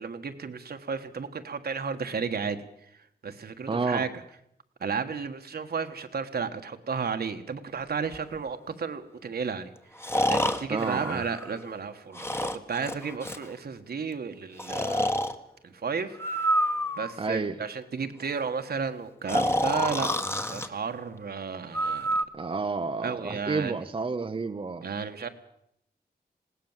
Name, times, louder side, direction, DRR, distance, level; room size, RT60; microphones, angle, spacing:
voice 1, 0.0-2.6 3.2-4.2 4.8-9.7 10.3-15.2 15.6-16.2 17.0-20.1 20.4-22.1 23.0-23.8 24.8-25.3, right 5 dB, 70° right, 7 dB, 1.6 m, -33 dB
voice 2, 3.7-4.1 10.7-11.2 17.2-17.6 22.3-24.9, right 4 dB, 35° right, 8 dB, 0.8 m, -30 dB
Breathing, 8.1-8.2 10.0-11.7 12.1-13.5 14.6-15.4 16.1-17.3 19.3-20.7 21.7-22.2, equal, 15° left, 1.3 m, -28 dB
20.0 x 17.0 x 7.4 m, 0.75 s
wide cardioid pair, 115°, 17 cm